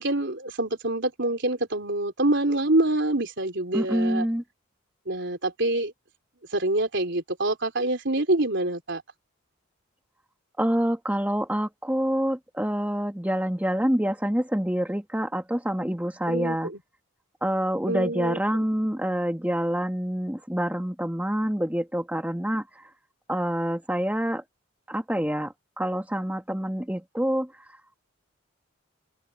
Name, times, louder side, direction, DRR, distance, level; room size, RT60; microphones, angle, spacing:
voice 1, 0.0-4.3 5.1-5.9 6.5-9.0 16.3-16.8 17.8-18.4, right 2 dB, 55° right, 4.3 m, -26 dB
voice 2, 3.7-4.4 10.6-16.7 17.4-22.6 23.3-24.4 24.9-27.5, equal, 5° right, 1.6 m, -27 dB
head